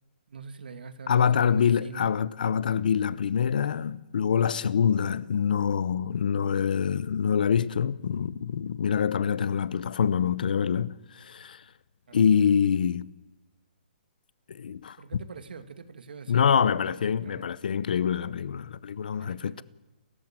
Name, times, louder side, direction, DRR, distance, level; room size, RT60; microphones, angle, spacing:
voice 1, 0.3-2.1 12.1-12.3 15.0-17.5 19.2-19.6, right 5 dB, 65° right, 2.4 m, -44 dB
voice 2, 1.1-11.6 12.1-13.1 14.5-15.0 16.3-19.6, left 7 dB, 55° left, 0.8 m, -25 dB
29.5 x 14.0 x 9.0 m
hypercardioid pair, 180°, 6 cm